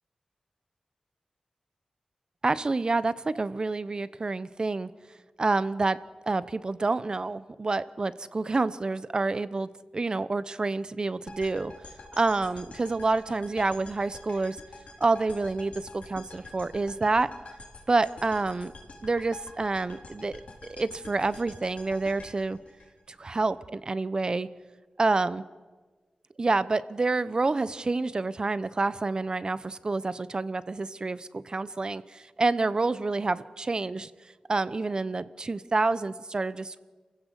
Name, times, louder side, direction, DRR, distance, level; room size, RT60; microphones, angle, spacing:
voice 1, 2.4-4.9 5.4-6.0 6.3-11.7 12.2-14.6 15.0-17.3 17.9-18.7 19.0-22.6 23.2-24.5 25.0-25.4 26.4-34.1 34.5-36.8, right 3 dB, 40° right, 16 dB, 0.9 m, -28 dB
sound 1, 11.3-23.4, left 2 dB, 80° left, 4.2 m, -47 dB
28.0 x 15.5 x 8.1 m, 1.4 s
wide cardioid pair, 100°, 2 cm